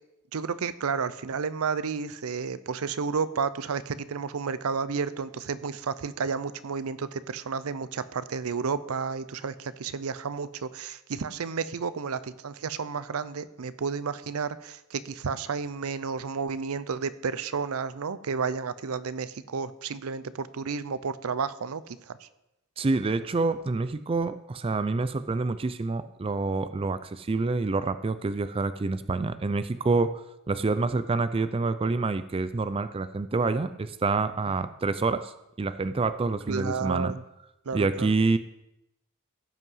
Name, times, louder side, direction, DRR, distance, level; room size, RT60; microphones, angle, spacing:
voice 1, 0.3-22.3 36.5-37.2 37.7-38.1, right 5 dB, 75° right, 16 dB, 0.5 m, -31 dB
voice 2, 22.8-37.1 37.7-38.4, right 3 dB, 25° right, 13 dB, 0.4 m, -27 dB
16.0 x 5.5 x 5.5 m, 0.88 s
head